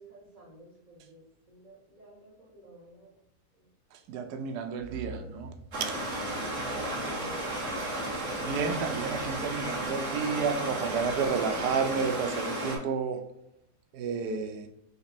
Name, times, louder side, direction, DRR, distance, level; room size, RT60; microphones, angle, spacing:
voice 1, 0.0-3.2 3.5-3.7 5.0-5.4 6.3-8.4, right 1 dB, 25° right, -6 dB, 1.9 m, -51 dB
voice 2, 3.9-5.5 5.8-5.9 8.4-13.2 13.9-14.7, right 5 dB, 85° right, 6 dB, 1.2 m, -31 dB
sound 1, 4.8-12.4, right 1 dB, 65° left, 2.1 m, -47 dB
Stream, 5.7-12.8, right 1 dB, 50° right, 1.4 m, -33 dB
4.1 x 3.0 x 4.2 m, 0.83 s
omnidirectional pair, 1.7 m